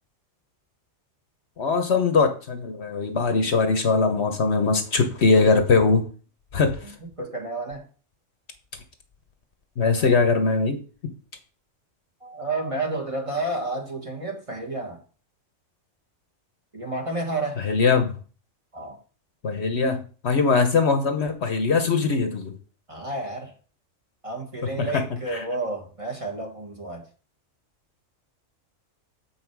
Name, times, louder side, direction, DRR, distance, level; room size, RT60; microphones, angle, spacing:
voice 1, 1.6-6.0 6.5-6.8 9.8-10.8 17.6-18.1 19.4-22.5 24.8-25.0 25.3-25.4, left 4 dB, 55° left, 1.1 m, -21 dB
voice 2, 6.8-7.9 10.0-10.2 12.2-15.0 16.7-17.6 18.7-19.0 22.9-23.5 24.2-27.1, right 2 dB, 25° right, 1.5 m, -31 dB
7.4 x 5.7 x 4.6 m
omnidirectional pair, 1.4 m